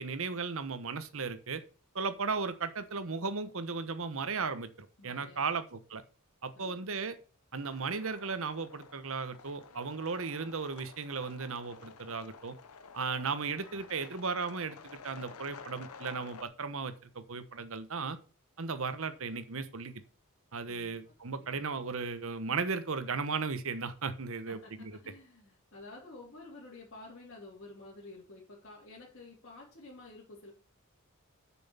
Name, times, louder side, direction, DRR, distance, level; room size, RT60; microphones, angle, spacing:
voice 1, 0.0-1.6 1.9-6.0 6.4-7.2 7.5-12.6 12.9-18.2 18.6-20.0 20.5-25.0, right 4 dB, 65° right, 12 dB, 1.0 m, -36 dB
voice 2, 5.0-5.6 6.5-6.8 20.7-21.5 24.5-24.7 25.0-30.5, left 2 dB, 55° left, -7 dB, 3.1 m, -51 dB
sound 1, 7.6-16.4, left 5 dB, 85° left, 0.8 m, -51 dB
7.0 x 6.1 x 7.2 m, 0.37 s
head